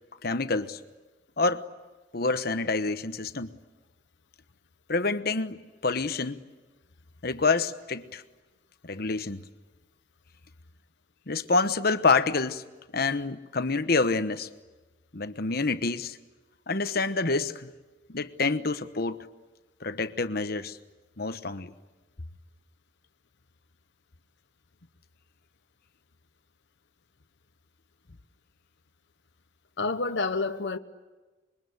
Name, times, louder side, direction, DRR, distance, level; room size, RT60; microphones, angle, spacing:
voice 1, 0.2-0.8 1.4-1.6 2.1-3.5 4.9-6.4 7.2-8.2 8.8-9.4 11.3-12.7 12.9-14.5 15.1-16.2 16.7-17.7 18.1-19.2 19.8-20.8 21.2-21.7, left 3 dB, 55° left, 1.1 m, -27 dB
voice 2, 29.8-30.8, left 3 dB, 75° left, 1.1 m, -28 dB
27.0 x 23.0 x 9.6 m
head